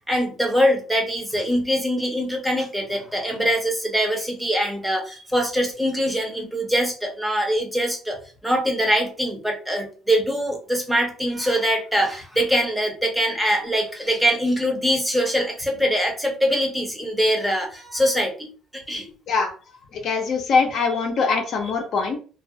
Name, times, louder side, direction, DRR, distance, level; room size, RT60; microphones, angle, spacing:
voice 1, 0.1-8.2 8.4-19.1, equal, 5° right, 1 dB, 0.6 m, -23 dB
voice 2, 19.9-22.2, left 4 dB, 55° left, 3 dB, 0.5 m, -22 dB
2.3 x 2.0 x 2.6 m, 0.38 s
cardioid pair, 125°, 0 cm